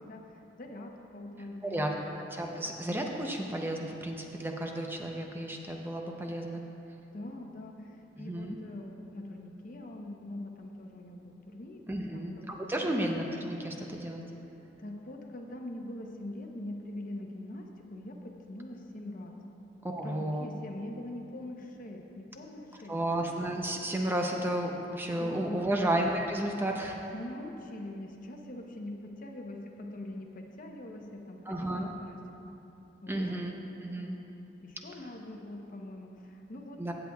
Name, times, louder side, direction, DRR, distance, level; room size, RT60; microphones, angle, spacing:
voice 1, 0.0-2.2 7.1-13.0 14.8-19.4 19.9-22.9 25.0-25.7 27.1-32.5 33.0-33.4 34.0-34.2 34.6-36.9, left 1 dB, 50° left, 2 dB, 0.8 m, -43 dB
voice 2, 2.3-6.6 8.2-8.6 11.9-14.2 19.8-20.5 22.9-27.0 31.5-31.9 33.1-33.5 33.8-34.1 36.8-36.9, right 1 dB, 10° right, 1 dB, 0.6 m, -32 dB
16.5 x 7.8 x 2.3 m, 2.9 s
head